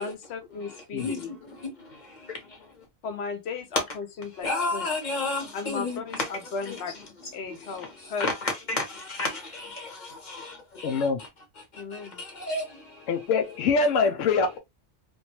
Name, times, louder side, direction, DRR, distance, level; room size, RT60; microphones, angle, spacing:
voice 1, 0.0-1.3 3.0-4.9 5.5-8.3 11.7-12.2, left 4 dB, 65° left, 0.9 m, -36 dB
voice 2, 1.0-2.8 4.4-6.3 6.7-6.8 7.7-11.3 11.6-13.3, left 3 dB, 40° left, 1.1 m, -33 dB
voice 3, 10.8-11.2 13.1-14.6, left 4 dB, 85° left, 1.0 m, -24 dB
2.9 x 2.6 x 2.8 m
omnidirectional pair, 1.3 m